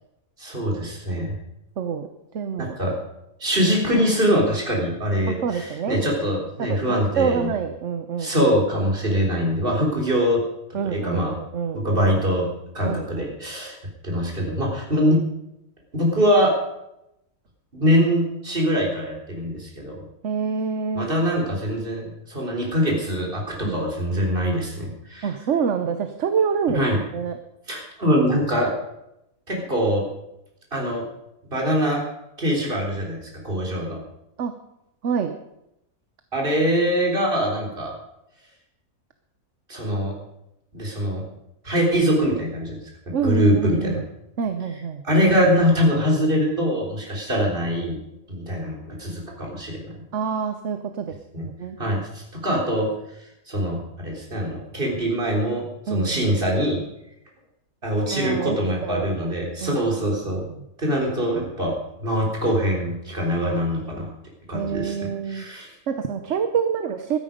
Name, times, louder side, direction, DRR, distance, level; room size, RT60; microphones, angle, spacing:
voice 1, 0.4-1.3 2.6-3.0 3.4-7.5 8.2-10.4 10.8-11.3 11.7-12.5 12.7-13.7 14.0-15.2 15.9-16.5 17.7-20.0 20.9-25.3 26.7-27.0 27.7-28.7 29.5-30.0 30.7-31.0 31.5-32.0 32.4-34.0 36.3-37.9 39.7-40.2 40.7-41.2 41.6-42.8 43.1-44.0 45.0-48.0 48.3-49.9 51.3-51.4 51.8-52.9 53.5-56.8 57.8-60.5 60.8-61.7 62.0-64.1 64.5-65.7, equal, 35° right, -1 dB, 4.0 m, -23 dB
voice 2, 1.8-2.1 2.3-2.7 5.3-6.0 6.6-6.8 7.2-8.5 10.7-11.9 12.8-13.3 20.2-21.1 23.6-23.8 25.2-26.8 27.1-27.3 34.4-34.5 35.0-35.4 43.1-44.0 44.4-45.0 50.1-51.8 55.9-56.3 58.1-58.6 58.8-59.3 59.6-59.8 60.3-60.6 64.5-65.5 65.9-67.2, right 6 dB, 55° right, 8 dB, 1.1 m, -26 dB
15.0 x 13.0 x 5.2 m, 0.84 s
omnidirectional pair, 1.6 m